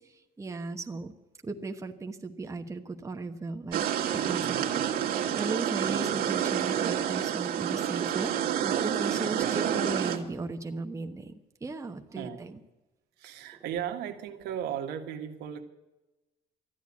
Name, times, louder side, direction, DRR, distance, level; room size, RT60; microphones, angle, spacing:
voice 1, 0.4-1.1 1.4-3.8 4.1-4.6 5.0-12.6, right 3 dB, 15° right, 5 dB, 1.1 m, -37 dB
sound 1, 3.7-10.2, right 9 dB, 60° right, 1.9 m, -28 dB
voice 2, 4.4-4.8 9.4-9.6 12.1-12.4 13.2-15.6, right 9 dB, 80° right, 4 dB, 1.7 m, -36 dB
14.0 x 9.3 x 8.4 m, 1.0 s
cardioid pair, 110°, 17 cm